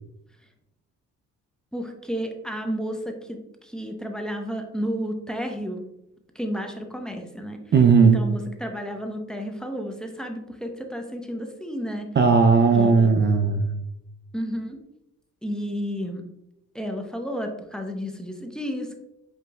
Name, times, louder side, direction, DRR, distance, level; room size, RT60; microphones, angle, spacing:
voice 1, 1.7-5.9 6.3-7.6 8.1-12.1 12.7-13.3 14.3-14.8 15.4-16.2 16.7-19.0, equal, ahead, 3 dB, 0.7 m, -32 dB
voice 2, 7.7-8.2 12.2-13.8, right 5 dB, 35° right, 6 dB, 0.5 m, -17 dB
7.8 x 2.9 x 2.3 m, 0.85 s
cardioid pair, 90°, 30 cm